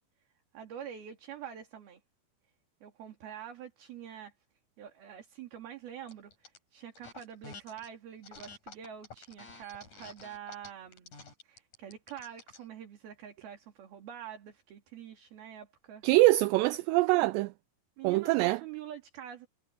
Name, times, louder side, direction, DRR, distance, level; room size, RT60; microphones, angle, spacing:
voice 1, 0.5-2.0 2.8-4.3 4.8-11.1 11.4-16.0 18.0-19.5, right 9 dB, 60° right, 4.5 m, -46 dB
sound 1, 6.1-6.6 6.9-7.9 8.2-12.7, left 4 dB, 40° left, 7.4 m, -50 dB
voice 2, 16.0-17.5 18.0-18.6, right 19 dB, 80° right, 2.6 m, -24 dB
omnidirectional pair, 5.2 m